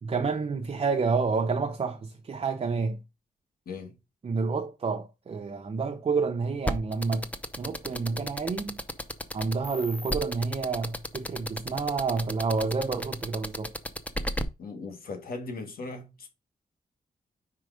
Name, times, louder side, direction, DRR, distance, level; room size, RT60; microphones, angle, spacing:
voice 1, 0.0-3.0 4.2-7.3 7.6-8.8 9.3-13.7, right 4 dB, 40° right, 0.8 m, -29 dB
sound 1, 6.7-14.4, left 1 dB, 10° left, 0.6 m, -32 dB
voice 2, 14.6-16.3, left 3 dB, 80° left, 2.0 m, -38 dB
5.0 x 4.9 x 4.8 m
wide cardioid pair, 135°, 15 cm